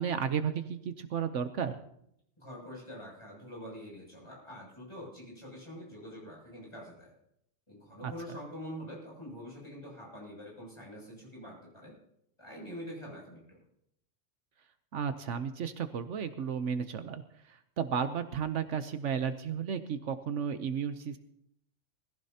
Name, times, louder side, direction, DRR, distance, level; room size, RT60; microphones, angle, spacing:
voice 1, 0.0-1.8 8.0-8.1 14.9-21.2, right 7 dB, 75° right, 10 dB, 1.1 m, -33 dB
voice 2, 2.4-7.1 7.7-11.9 12.4-13.6, equal, 25° left, -4 dB, 7.3 m, -45 dB
20.5 x 15.5 x 2.8 m, 0.75 s
omnidirectional pair, 1.3 m